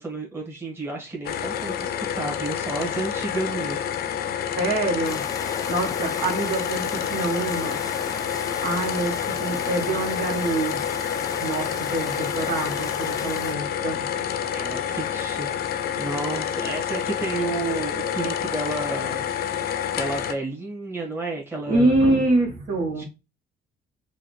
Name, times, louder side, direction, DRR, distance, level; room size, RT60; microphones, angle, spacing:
voice 1, 0.0-3.8 14.5-15.5 16.0-19.3 19.9-22.0 23.0-23.1, right 3 dB, 15° right, 1.7 m, -31 dB
sound 1, 1.2-20.3, left 9 dB, 65° left, 0.6 m, -28 dB
voice 2, 4.5-5.2 5.7-7.8 8.6-10.8 11.3-14.1 21.7-23.0, right 2 dB, 60° right, 1.5 m, -25 dB
sound 2, 5.0-13.5, left 4 dB, 20° left, 0.5 m, -36 dB
4.7 x 2.5 x 3.1 m
cardioid pair, 110°, 17 cm